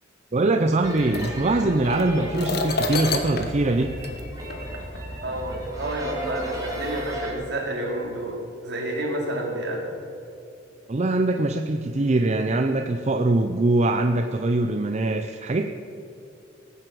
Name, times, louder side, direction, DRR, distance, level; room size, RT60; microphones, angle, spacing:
voice 1, 0.3-3.9 10.9-15.7, right 2 dB, 35° right, 5 dB, 0.6 m, -22 dB
sound 1, 0.8-7.3, equal, 20° right, 3.0 m, -34 dB
sound 2, 0.9-5.0 5.9-6.0 6.7-7.1, left 3 dB, 55° left, 1.2 m, -31 dB
voice 2, 5.2-9.9, right 1 dB, 65° right, -1 dB, 3.1 m, -29 dB
18.0 x 7.8 x 7.8 m, 2.6 s
head